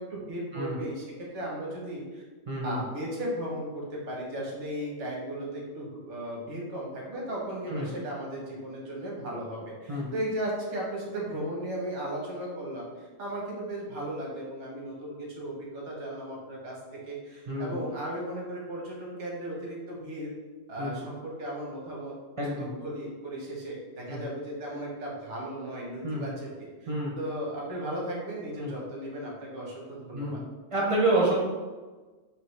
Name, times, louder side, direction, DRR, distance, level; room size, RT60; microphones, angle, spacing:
voice 1, 0.0-2.2 2.6-20.3 20.7-22.2 22.6-30.4, right 1 dB, 85° right, -3 dB, 1.2 m, -36 dB
voice 2, 2.5-2.8 7.7-7.9 9.9-10.1 17.5-17.8 20.8-20.9 22.4-22.7 24.1-24.2 26.0-26.3 26.9-27.1 28.6-28.7 30.1-30.4 30.7-31.4, right 1 dB, 45° right, -4 dB, 0.4 m, -28 dB
3.5 x 2.5 x 3.1 m, 1.3 s
omnidirectional pair, 1.2 m